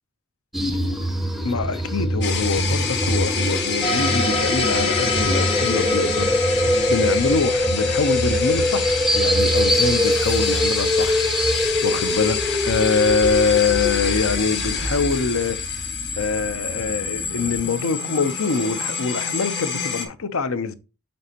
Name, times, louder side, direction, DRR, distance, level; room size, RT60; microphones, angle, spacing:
sound 1, 0.5-17.7, equal, ahead, 0.5 m, -24 dB
voice 1, 1.4-15.6 16.2-20.7, left 4 dB, 80° left, 0.7 m, -24 dB
sound 2, 2.2-20.1, left 6 dB, 55° left, 1.2 m, -28 dB
sound 3, 3.8-10.7, left 3 dB, 25° left, 0.9 m, -28 dB
8.6 x 4.1 x 2.9 m
head